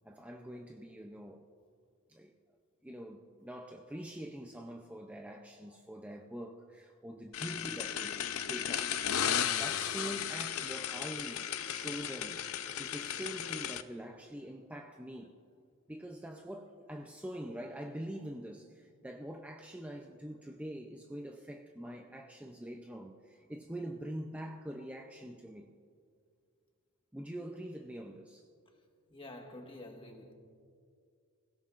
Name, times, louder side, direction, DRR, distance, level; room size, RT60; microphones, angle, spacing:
voice 1, 0.0-1.5 2.1-2.3 2.8-8.2 8.5-8.9 9.6-12.4 12.8-15.4 15.9-25.7 27.1-28.5, right 1 dB, 5° right, 0.6 m, -44 dB
sound 1, 7.3-13.8, left 9 dB, 70° left, 0.6 m, -35 dB
voice 2, 29.1-30.3, left 1 dB, 25° left, 1.6 m, -51 dB
29.5 x 16.5 x 2.5 m
head